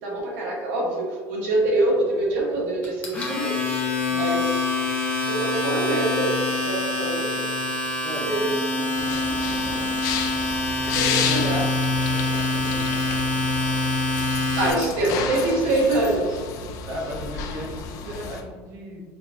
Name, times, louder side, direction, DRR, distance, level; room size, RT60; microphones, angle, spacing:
voice 1, 0.0-3.5 4.1-4.7 5.2-7.5 8.2-9.8 10.9-11.6 14.5-16.4, right 2 dB, 85° right, -3 dB, 1.3 m, -25 dB
Domestic sounds home sounds, 2.8-14.7, left 2 dB, 20° left, 0.7 m, -25 dB
voice 2, 8.0-9.0 11.0-11.7 12.1-12.2 12.5-12.9 16.9-19.0, equal, 40° right, 0 dB, 0.7 m, -36 dB
sound 1, 9.0-18.4, left 6 dB, 50° left, 0.4 m, -31 dB
4.8 x 2.7 x 2.2 m, 1.5 s
cardioid pair, 155°, 7 cm